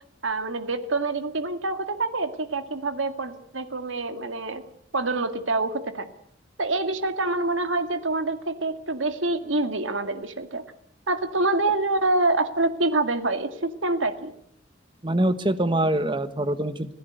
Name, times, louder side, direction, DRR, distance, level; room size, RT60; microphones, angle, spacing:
voice 1, 0.2-4.6 4.9-6.1 6.6-10.6 11.1-14.3, right 2 dB, 85° right, 8 dB, 2.1 m, -26 dB
voice 2, 15.0-16.9, right 1 dB, 25° right, 11 dB, 1.3 m, -24 dB
26.0 x 16.5 x 8.1 m, 0.67 s
head